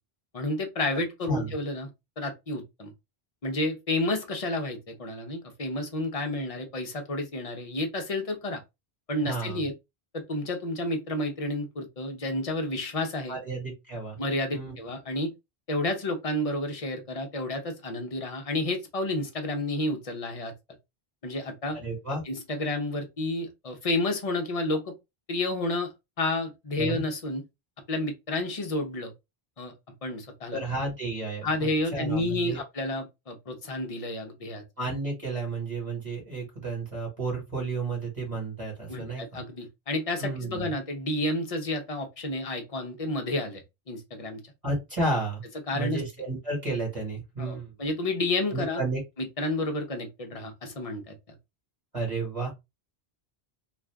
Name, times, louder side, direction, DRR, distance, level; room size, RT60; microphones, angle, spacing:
voice 1, 0.3-1.9 2.2-2.9 3.4-8.6 9.1-9.7 10.1-13.4 14.2-15.3 15.7-20.5 21.2-21.8 22.3-24.9 25.3-27.4 27.9-29.1 29.6-29.7 30.0-30.6 31.4-34.6 38.9-44.4 45.7-46.0 47.4-48.8 49.2-51.1, left 2 dB, 40° left, 0.7 m, -30 dB
voice 2, 9.3-9.7 13.3-14.2 14.5-14.8 21.7-22.2 26.8-27.0 30.5-32.6 34.8-39.4 40.2-40.7 44.6-45.4 45.7-47.7 48.5-49.0 51.9-52.5, right 2 dB, 35° right, 1.3 m, -32 dB
2.5 x 2.4 x 3.3 m
omnidirectional pair, 1.0 m